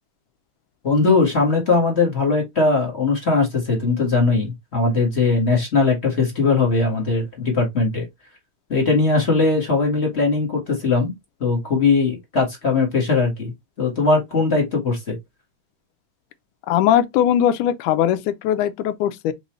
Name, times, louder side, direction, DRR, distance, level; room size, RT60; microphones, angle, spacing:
voice 1, 0.8-8.1 8.7-11.1 11.4-13.5 13.8-15.2, left 3 dB, 40° left, 0.9 m, -20 dB
voice 2, 16.7-19.3, left 10 dB, 85° left, 2.1 m, -20 dB
4.4 x 4.0 x 3.0 m
omnidirectional pair, 3.6 m